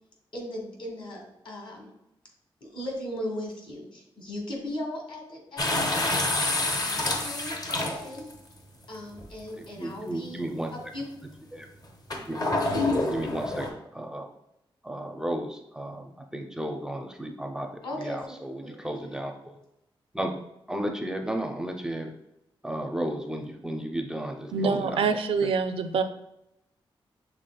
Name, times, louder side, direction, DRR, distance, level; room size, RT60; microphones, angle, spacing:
voice 1, 0.3-1.9 2.6-6.4 6.8-8.2 8.9-10.4 10.7-11.0 17.8-19.1, left 1 dB, 65° left, -1 dB, 1.7 m, -38 dB
sound 1, 5.6-8.3 9.2-9.3 12.1-13.7, left 2 dB, 45° left, 0.8 m, -27 dB
voice 2, 9.6-10.7 11.5-11.7 12.2-12.4 13.0-14.3 14.8-17.7 18.0-19.6 20.1-20.4 20.7-22.1 22.6-25.0, right 1 dB, 5° right, 3 dB, 0.5 m, -33 dB
voice 3, 24.5-26.0, right 5 dB, 80° right, 8 dB, 0.4 m, -25 dB
6.7 x 3.4 x 2.2 m, 0.85 s
wide cardioid pair, 110°, 9 cm